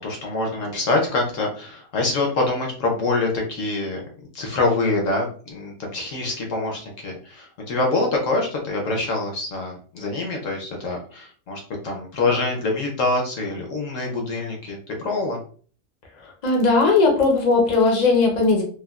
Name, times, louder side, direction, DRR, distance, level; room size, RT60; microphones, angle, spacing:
voice 1, 0.0-4.0 4.3-15.4, left 2 dB, 60° left, 1 dB, 1.0 m, -25 dB
voice 2, 16.2-18.6, left 3 dB, 40° left, 1 dB, 0.6 m, -18 dB
3.4 x 2.3 x 2.3 m, 0.44 s
omnidirectional pair, 1.7 m